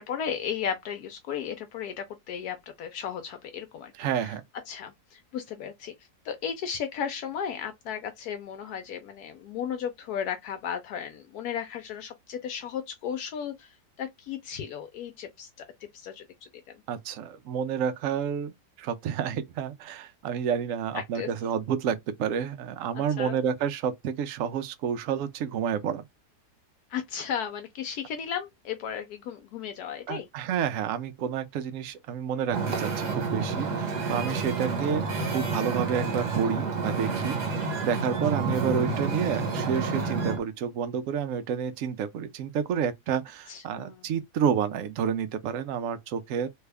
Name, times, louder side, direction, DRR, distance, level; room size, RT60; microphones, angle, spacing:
voice 1, 0.0-4.3 4.7-5.9 6.2-13.7 14.0-15.5 15.9-16.2 20.9-21.3 23.2-23.4 26.9-30.3 37.6-37.7 40.1-40.2 43.5-44.0, left 8 dB, 75° left, 1.1 m, -35 dB
voice 2, 3.9-4.4 16.9-26.0 30.1-35.1 35.3-37.4 37.8-46.5, right 7 dB, 65° right, 0.9 m, -30 dB
Wind / Ocean, 32.5-40.4, right 4 dB, 85° right, 1.7 m, -29 dB
3.3 x 2.3 x 3.4 m
omnidirectional pair, 1.7 m